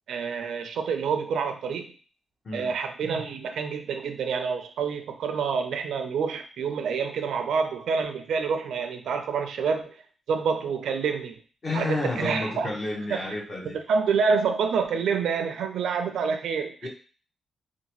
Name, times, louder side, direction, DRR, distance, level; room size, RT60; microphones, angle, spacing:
voice 1, 0.1-1.9 2.5-10.0 10.3-11.4 11.7-12.7 13.1-13.2 13.9-16.9, right 5 dB, 85° right, 6 dB, 0.4 m, -27 dB
voice 2, 11.6-13.8 16.8-16.9, left 2 dB, 35° left, 0 dB, 0.8 m, -31 dB
2.8 x 2.2 x 2.9 m, 0.38 s
cardioid pair, 115°, 0 cm